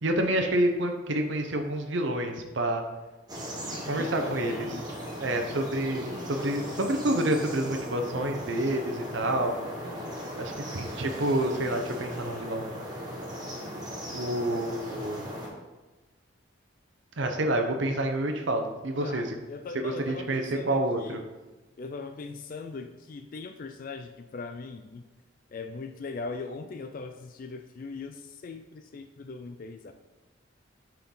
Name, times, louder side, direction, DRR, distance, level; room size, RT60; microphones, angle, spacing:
voice 1, 0.0-2.8 3.9-4.7 5.2-9.5 10.4-12.7 14.1-15.2 17.2-19.3 19.7-21.2, right 1 dB, 65° right, 4 dB, 0.8 m, -28 dB
sound 1, 3.3-15.5, equal, 20° right, 1.4 m, -38 dB
voice 2, 3.7-4.9 19.0-21.2 21.8-25.1 25.5-29.9, left 4 dB, 45° left, 7 dB, 0.3 m, -40 dB
9.0 x 4.5 x 3.8 m, 1.1 s
head